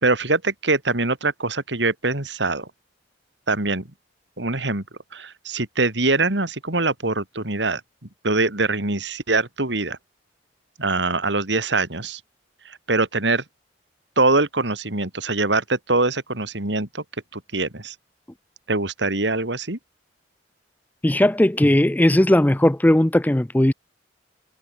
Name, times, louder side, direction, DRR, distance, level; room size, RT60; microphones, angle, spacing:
voice 1, 0.0-2.7 3.5-3.9 4.4-4.8 5.1-7.8 8.2-10.0 10.8-12.2 12.7-13.4 14.2-17.0 17.3-18.0 18.7-19.8, right 3 dB, 70° right, 3.4 m, -23 dB
voice 2, 21.0-23.7, left 1 dB, 10° left, 0.5 m, -17 dB
head